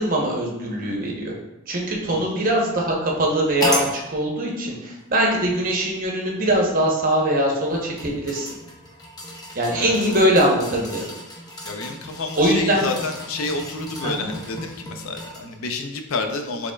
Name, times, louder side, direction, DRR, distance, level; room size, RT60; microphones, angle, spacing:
voice 1, 0.0-1.3 1.7-8.5 9.5-11.1 12.4-12.8 14.0-14.3, right 1 dB, 40° right, -1 dB, 0.9 m, -22 dB
voice 2, 2.0-2.3 9.7-10.2 11.6-16.7, left 3 dB, 80° left, 5 dB, 0.5 m, -29 dB
sound 1, 3.6-3.9 5.0-5.1 7.5-15.6 16.1-16.2, left 1 dB, 20° left, 0.6 m, -33 dB
5.0 x 3.5 x 2.3 m, 0.95 s
head